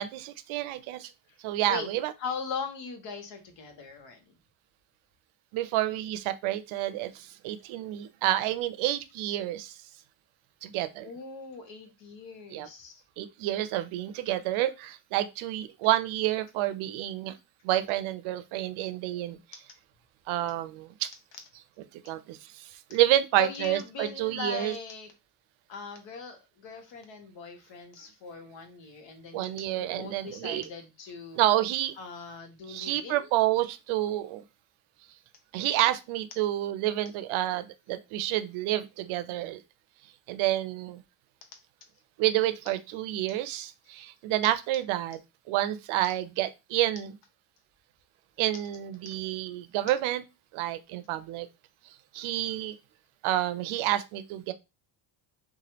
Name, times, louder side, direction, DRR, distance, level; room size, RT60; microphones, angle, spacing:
voice 1, 0.0-1.1 1.4-2.1 5.5-9.8 10.6-11.1 12.5-12.7 13.2-17.4 17.6-19.4 20.3-21.1 22.1-24.7 29.3-30.6 31.4-31.9 32.7-34.4 35.5-39.6 40.3-41.0 42.2-45.2 45.5-47.1 48.4-50.2 50.5-51.5 52.1-52.7 53.2-54.5, right 14 dB, 75° right, 0.6 m, -29 dB
voice 2, 2.2-4.3 11.0-13.0 23.3-25.1 25.7-31.4 32.0-33.3, left 5 dB, 65° left, 1.0 m, -40 dB
3.0 x 2.4 x 2.8 m
cardioid pair, 90°, 48 cm